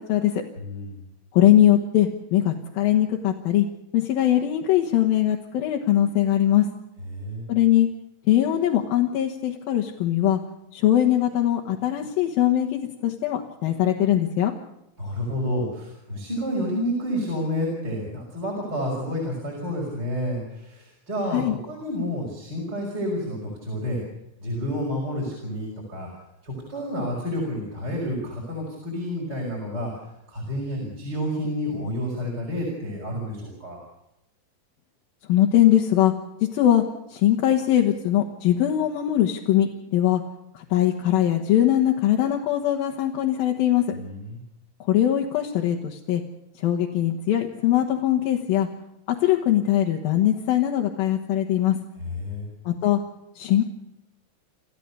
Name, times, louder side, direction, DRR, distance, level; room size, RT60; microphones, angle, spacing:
voice 1, 0.6-0.9 7.1-7.5 15.0-24.0 24.4-26.1 26.4-29.9 30.3-33.8 43.9-44.4 52.0-52.5, equal, 30° right, 0 dB, 5.8 m, -29 dB
voice 2, 1.3-3.7 3.9-6.7 7.5-7.9 8.3-10.4 10.7-14.5 21.3-21.5 35.3-36.1 36.5-36.8 37.1-40.2 40.5-43.8 44.9-46.2 46.6-48.7 49.2-51.8 52.7-53.0 53.4-53.7, left 12 dB, 85° left, 0 dB, 3.2 m, -21 dB
29.0 x 14.5 x 6.8 m, 0.87 s
omnidirectional pair, 4.1 m